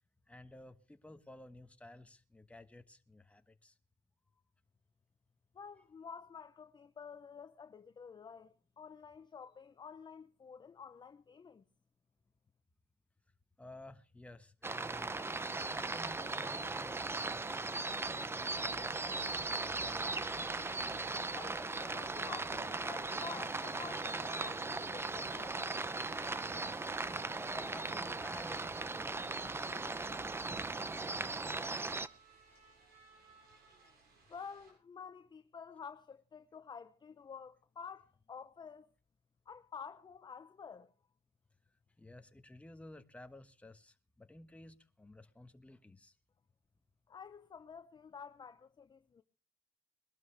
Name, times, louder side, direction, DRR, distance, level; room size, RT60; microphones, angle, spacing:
voice 1, 0.3-3.8 13.6-15.2 15.7-17.8 18.2-18.8 19.2-20.2 27.3-30.9 42.0-46.1, left 1 dB, 5° left, 1.2 m, -54 dB
voice 2, 5.5-11.6 21.3-25.6 34.3-38.9 39.5-40.9 47.1-49.2, left 6 dB, 25° left, 0.7 m, -50 dB
sound 1, 14.6-32.1, right 3 dB, 15° right, 0.6 m, -38 dB
sound 2, 15.2-34.7, right 4 dB, 70° right, 7.1 m, -63 dB
22.0 x 12.5 x 3.3 m
cardioid pair, 110°, 17 cm